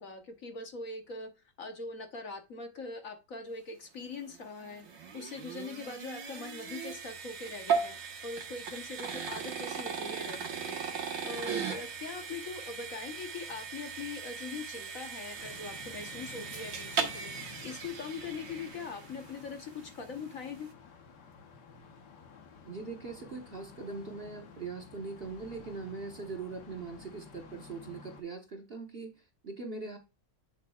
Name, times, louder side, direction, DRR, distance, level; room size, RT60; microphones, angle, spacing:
voice 1, 0.0-1.3 1.6-4.8 5.1-8.0 8.2-10.8 11.2-17.3 17.6-20.7, left 4 dB, 55° left, 1.4 m, -42 dB
sound 1, 4.2-19.4, right 6 dB, 90° right, 2.0 m, -38 dB
sound 2, 15.4-28.2, left 5 dB, 70° left, 1.7 m, -52 dB
voice 2, 22.6-30.0, right 4 dB, 40° right, 1.0 m, -41 dB
8.0 x 7.4 x 2.3 m
omnidirectional pair, 1.9 m